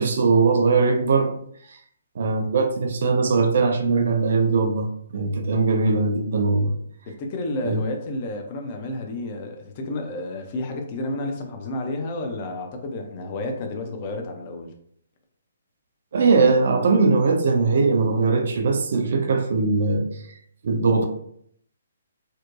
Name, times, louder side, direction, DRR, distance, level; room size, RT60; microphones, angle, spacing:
voice 1, 0.0-1.3 2.2-6.7 7.6-7.8 16.1-20.1 20.6-21.0, right 4 dB, 50° right, 5 dB, 0.4 m, -20 dB
voice 2, 7.1-14.7, left 2 dB, 35° left, 3 dB, 0.4 m, -31 dB
2.6 x 2.1 x 2.4 m, 0.67 s
figure-of-eight pair, 130°, 0 cm